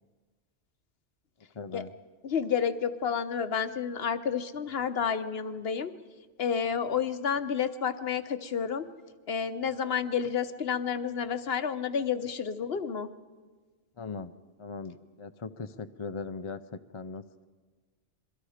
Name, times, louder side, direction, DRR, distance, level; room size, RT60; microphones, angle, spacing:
voice 1, 1.5-1.9 14.0-14.3 14.6-17.5, left 4 dB, 35° left, 9 dB, 0.6 m, -39 dB
voice 2, 2.2-5.9 6.4-8.8 9.3-13.1, left 7 dB, 55° left, 10 dB, 1.1 m, -30 dB
27.5 x 23.0 x 5.0 m, 1.4 s
omnidirectional pair, 1.2 m